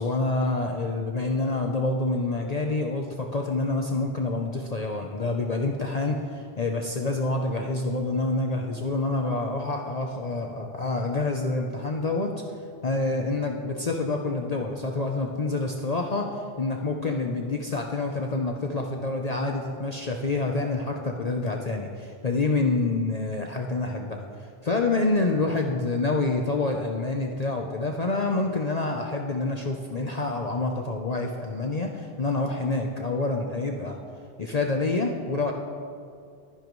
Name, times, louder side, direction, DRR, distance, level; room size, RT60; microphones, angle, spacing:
voice 1, 0.0-12.3 12.8-34.0 34.4-35.5, left 3 dB, 40° left, 2 dB, 0.8 m, -27 dB
21.5 x 10.5 x 3.2 m, 2.3 s
omnidirectional pair, 1.1 m